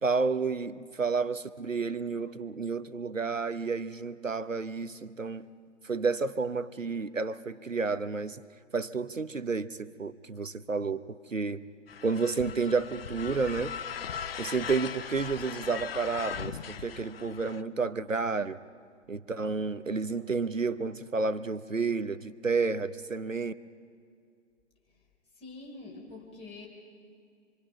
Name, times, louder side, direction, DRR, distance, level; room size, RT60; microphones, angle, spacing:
voice 1, 0.0-5.5 5.8-8.4 8.7-11.0 11.3-11.6 12.0-13.7 14.4-18.6 19.1-23.5, right 4 dB, 85° right, 15 dB, 1.0 m, -31 dB
sound 1, 11.9-17.6, left 7 dB, 50° left, 0.7 m, -39 dB
voice 2, 25.4-26.7, left 3 dB, 15° left, -2 dB, 4.1 m, -45 dB
26.5 x 25.0 x 5.8 m, 2.3 s
figure-of-eight pair, 130°, 38 cm